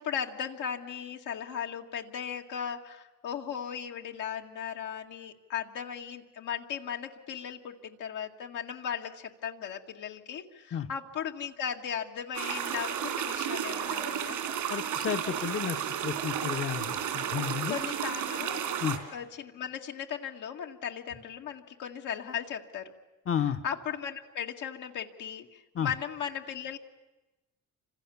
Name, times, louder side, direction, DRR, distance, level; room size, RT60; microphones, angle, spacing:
voice 1, 0.0-14.4 17.7-18.6 19.1-22.9 23.6-26.8, left 8 dB, 85° left, 2 dB, 2.2 m, -37 dB
sound 1, 12.3-19.0, right 9 dB, 85° right, 3.5 m, -33 dB
voice 2, 14.7-15.8 16.0-17.8 18.8-19.0 23.3-23.6 25.7-25.9, left 8 dB, 45° left, 7 dB, 1.1 m, -32 dB
29.5 x 26.0 x 7.1 m, 1.1 s
cardioid pair, 90°, 30 cm